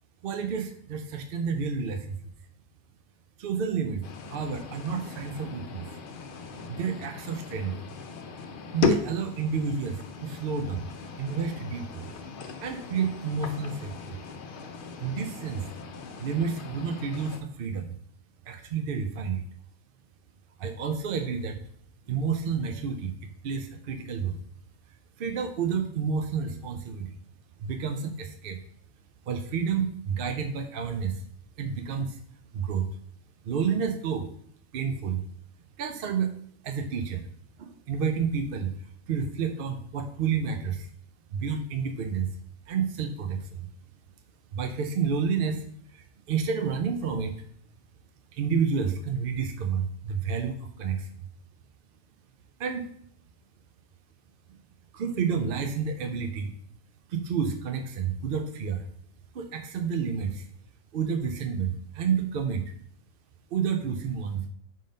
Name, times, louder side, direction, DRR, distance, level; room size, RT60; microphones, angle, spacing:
voice 1, 0.2-2.3 3.4-5.9 6.7-7.7 8.7-10.8 11.2-12.0 12.6-14.2 15.0-15.7 16.2-18.0 18.5-19.4 20.6-21.6 22.1-24.4 25.2-27.1 27.6-28.6 29.3-31.2 31.6-32.2 32.5-32.9 33.4-34.3 34.7-35.2 35.8-36.3 36.6-37.3 37.6-38.7 39.1-40.9 41.3-42.3 42.7-43.6 44.5-45.6 45.9-47.4 48.3-51.1 52.6-52.9 54.9-56.5 57.1-58.8 59.3-60.5 60.9-62.6 63.5-64.4, right 6 dB, 60° right, 6 dB, 0.6 m, -30 dB
sound 1, 4.0-17.4, left 4 dB, 55° left, 0.7 m, -36 dB
5.5 x 3.8 x 5.0 m, 0.64 s
omnidirectional pair, 1.3 m